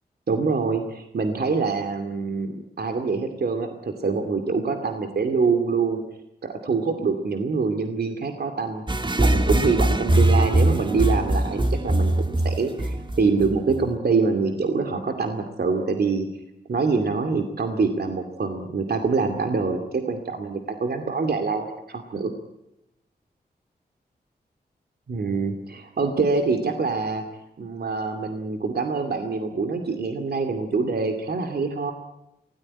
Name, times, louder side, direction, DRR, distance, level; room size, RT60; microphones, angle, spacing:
voice 1, 0.3-6.0 6.4-8.8 9.2-16.3 16.7-22.3 25.1-27.2 27.6-31.9, right 4 dB, 65° right, 5 dB, 2.4 m, -25 dB
sound 1, 8.9-13.9, right 1 dB, 30° right, 2.0 m, -21 dB
24.0 x 18.0 x 9.8 m, 0.87 s
cardioid pair, 50°, 17 cm